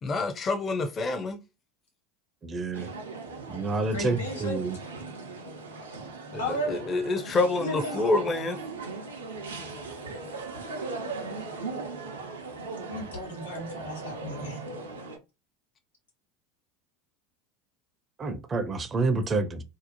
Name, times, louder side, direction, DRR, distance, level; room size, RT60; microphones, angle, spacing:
voice 1, 0.0-1.4 6.3-8.6, left 3 dB, 30° left, 0.5 m, -27 dB
voice 2, 2.4-2.9 3.5-4.8 18.2-19.6, right 3 dB, 30° right, 0.4 m, -28 dB
sound 1, 2.7-15.2, right 3 dB, 85° right, 0.5 m, -39 dB
voice 3, 3.9-4.6 6.4-6.8 7.6-8.0 12.9-14.6, equal, 90° left, 0.9 m, -34 dB
2.7 x 2.0 x 2.8 m
hypercardioid pair, 80°, 0 cm